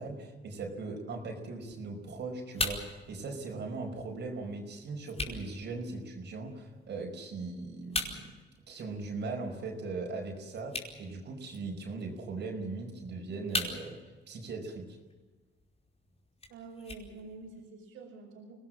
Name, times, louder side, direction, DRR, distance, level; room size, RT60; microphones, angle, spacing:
voice 1, 0.0-8.3 8.7-14.0 14.3-15.0, right 3 dB, 60° right, 2 dB, 5.1 m, -39 dB
sound 1, 1.7-17.7, left 2 dB, 30° left, 5.0 m, -43 dB
voice 2, 16.5-18.6, right 3 dB, 90° right, -4 dB, 5.9 m, -47 dB
25.5 x 18.5 x 7.5 m, 1.3 s
cardioid pair, 90°, 20 cm